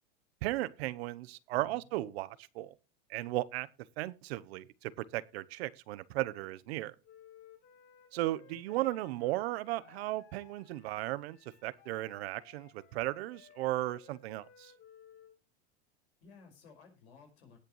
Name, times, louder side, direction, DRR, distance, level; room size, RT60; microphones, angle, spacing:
voice 1, 0.4-2.7 3.1-3.7 4.0-6.9 8.1-11.4 11.6-14.7, right 17 dB, 70° right, 0.9 m, -36 dB
voice 2, 1.5-1.8 8.7-8.8 16.2-17.6, left 5 dB, 90° left, 5.4 m, -57 dB
Wind instrument woodwind instrument, 7.0-15.4, left 9 dB, 45° left, 7.3 m, -60 dB
18.5 x 6.7 x 3.1 m
supercardioid pair, 120°, 32 cm